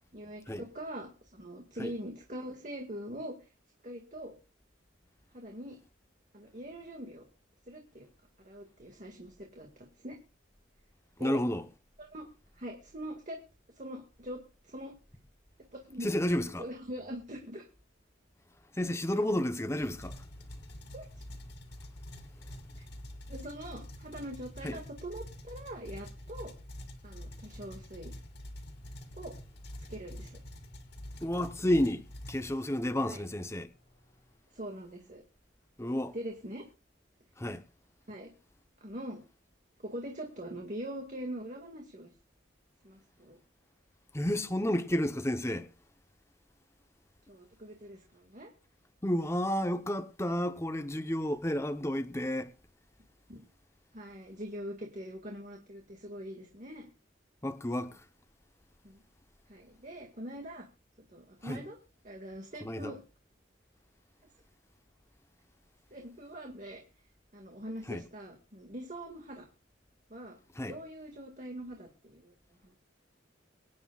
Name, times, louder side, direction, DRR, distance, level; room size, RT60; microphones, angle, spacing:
voice 1, 0.1-3.5 3.8-4.3 5.3-5.8 6.3-7.2 7.7-8.1 8.4-10.2 11.2-11.4 12.0-12.3 12.5-13.4 13.8-14.9 15.7-16.1 16.6-17.7 20.9-21.1 23.3-26.5 27.0-28.1 29.2-29.3 29.9-30.4 33.0-33.2 34.5-35.2 36.1-36.7 38.1-38.3 38.8-39.2 39.8-42.1 42.8-43.4 47.3-48.5 53.3-53.4 53.9-56.9 58.8-59.0 59.5-60.7 61.1-61.8 62.0-63.0 65.9-66.8 67.3-69.5 70.1-70.4 70.7-72.3 72.6-72.7, equal, 40° right, 2.0 m, -43 dB
voice 2, 11.2-11.6 16.0-16.7 18.7-20.2 24.6-24.8 31.2-32.0 32.3-33.7 35.8-36.1 37.4-37.6 44.1-45.7 49.0-52.5 57.4-58.0 61.4-61.6 62.6-62.9 67.9-68.0 70.6-70.7, left 1 dB, 15° left, 0.9 m, -31 dB
sound 1, 19.8-33.0, left 1 dB, 60° left, 2.4 m, -46 dB
24.5 x 9.7 x 2.4 m
head